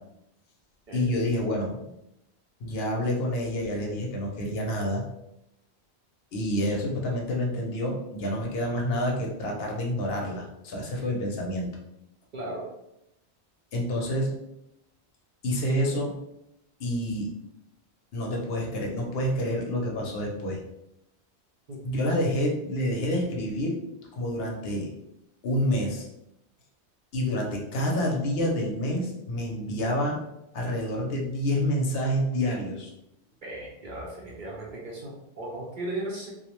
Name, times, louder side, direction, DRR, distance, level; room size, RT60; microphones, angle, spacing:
voice 1, 0.9-1.9 2.6-5.0 6.3-11.7 13.7-14.3 15.4-16.1 16.8-17.3 18.1-20.6 21.8-23.8 24.1-24.9 25.4-26.1 27.1-30.2 30.5-32.9, equal, 70° left, 0 dB, 0.8 m, -28 dB
voice 2, 12.3-12.7 21.7-21.8 33.4-36.3, right 1 dB, 55° right, -3 dB, 0.6 m, -36 dB
2.4 x 2.0 x 2.9 m, 0.83 s
omnidirectional pair, 1.1 m